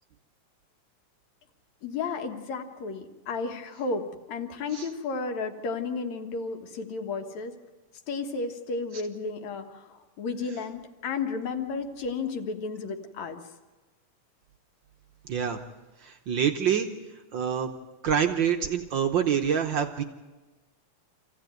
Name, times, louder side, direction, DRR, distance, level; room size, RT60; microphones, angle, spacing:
voice 1, 1.8-7.5 8.1-13.4, left 4 dB, 70° left, 5 dB, 2.7 m, -33 dB
voice 2, 15.2-15.6 16.0-16.9 17.3-17.7 18.0-20.0, right 8 dB, 70° right, 6 dB, 1.0 m, -26 dB
26.5 x 15.5 x 9.2 m, 1.2 s
omnidirectional pair, 3.4 m